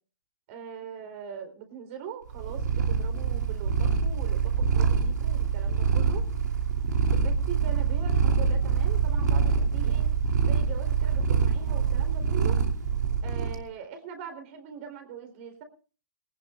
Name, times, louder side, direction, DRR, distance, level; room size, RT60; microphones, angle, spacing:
voice 1, 0.5-6.2 7.1-10.1 10.4-12.6 13.2-15.6, right 7 dB, 45° right, 8 dB, 4.0 m, -41 dB
Purr, 2.3-13.6, right 6 dB, 65° right, 3.0 m, -25 dB
20.0 x 19.0 x 2.5 m, 0.37 s
hypercardioid pair, 135°, 10 cm